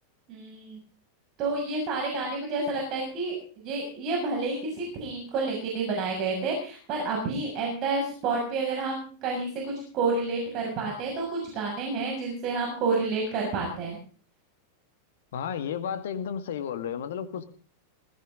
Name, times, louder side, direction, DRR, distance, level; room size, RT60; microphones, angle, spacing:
voice 1, 0.3-0.8 1.4-14.0, right 3 dB, 40° right, 6.7 m, -29 dB
voice 2, 15.3-17.4, left 8 dB, 60° left, 1.9 m, -32 dB
20.5 x 17.0 x 3.9 m
figure-of-eight pair, 90°, 0 cm